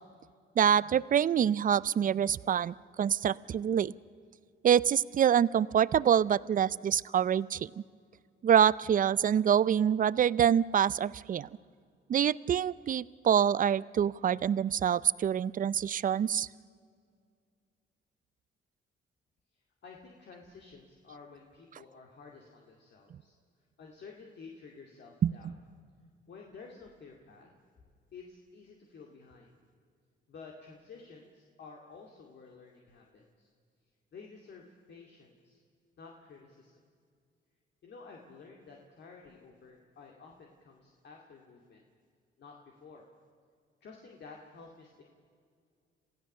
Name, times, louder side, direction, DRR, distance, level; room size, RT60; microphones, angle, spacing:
voice 1, 0.6-3.9 4.6-7.8 8.4-11.5 12.1-16.5 25.2-25.5, right 9 dB, 45° right, 20 dB, 0.5 m, -26 dB
voice 2, 19.8-23.3 23.8-25.5 26.3-27.5 28.1-29.5 30.3-33.5 34.1-35.6 36.0-36.7 37.8-41.8 42.4-43.1 43.8-45.0, left 4 dB, 60° left, 0 dB, 2.4 m, -52 dB
27.5 x 16.0 x 6.7 m, 2.1 s
cardioid pair, 90°, 20 cm